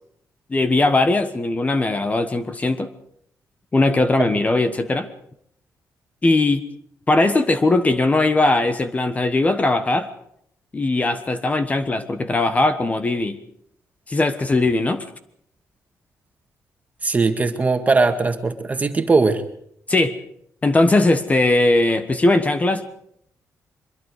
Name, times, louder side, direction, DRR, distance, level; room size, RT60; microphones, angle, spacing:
voice 1, 0.5-2.9 3.7-5.1 6.2-6.6 7.1-10.1 10.7-13.4 14.1-15.0 19.9-20.2 20.6-22.8, left 2 dB, 25° left, 10 dB, 1.3 m, -19 dB
voice 2, 17.0-19.4, right 3 dB, 25° right, 7 dB, 2.0 m, -19 dB
24.0 x 22.0 x 4.9 m, 0.71 s
cardioid pair, 110°, 6 cm